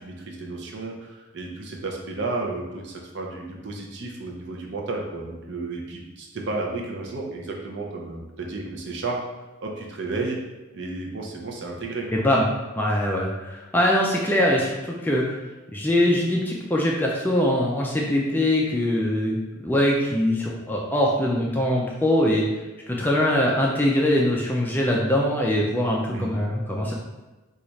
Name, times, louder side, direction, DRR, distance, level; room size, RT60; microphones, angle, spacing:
voice 1, 0.0-9.2 9.6-10.4 10.7-12.2 26.1-26.3, right 3 dB, 55° right, 0 dB, 0.6 m, -32 dB
voice 2, 12.1-12.5 12.8-15.4 15.7-22.5 22.9-26.9, left 1 dB, 10° left, -2 dB, 0.3 m, -22 dB
3.1 x 2.4 x 4.0 m, 1.2 s
head